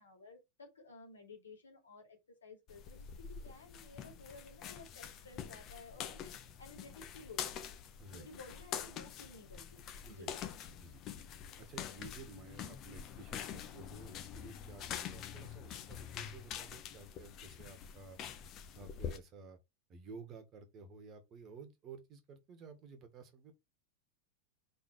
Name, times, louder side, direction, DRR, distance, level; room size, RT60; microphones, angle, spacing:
voice 1, 0.0-7.6 8.1-10.4, left 3 dB, 70° left, 2.8 m, -55 dB
sound 1, 2.7-19.2, left 8 dB, 35° left, 1.1 m, -46 dB
voice 2, 11.6-18.2 18.7-19.6 19.9-23.5, right 4 dB, 30° right, 1.7 m, -53 dB
4.9 x 4.4 x 4.5 m
figure-of-eight pair, 90°, 0 cm